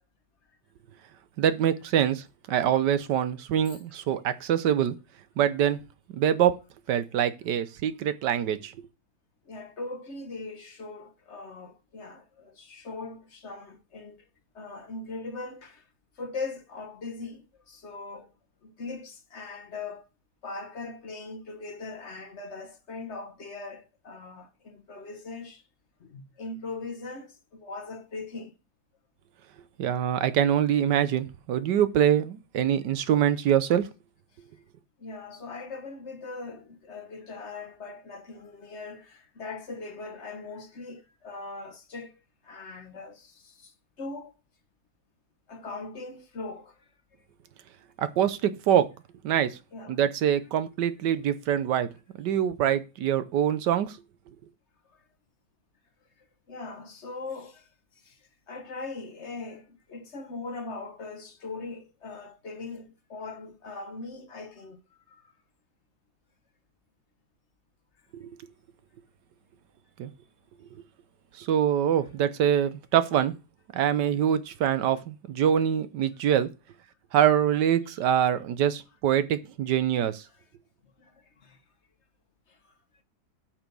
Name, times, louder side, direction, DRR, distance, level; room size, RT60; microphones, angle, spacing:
voice 1, 1.4-5.0 5.4-5.8 6.1-6.5 6.9-8.7 29.8-33.8 48.0-48.9 49.2-49.6 49.9-51.9 52.2-54.0 68.1-68.3 70.0-70.1 71.4-73.3 73.7-76.5 77.1-80.2, right 10 dB, 75° right, 1.4 m, -24 dB
voice 2, 9.5-14.2 14.5-15.8 16.2-18.3 18.6-20.0 20.4-25.6 26.0-28.5 35.0-42.1 42.4-43.7 44.0-44.3 45.5-46.7 49.7-50.0 56.5-57.6 58.0-58.2 58.5-64.8 65.1-65.2 77.9-78.0 80.3-80.4 81.0-81.1 81.4-81.6, left 3 dB, 45° left, 1.3 m, -40 dB
8.7 x 5.9 x 5.4 m
omnidirectional pair, 1.9 m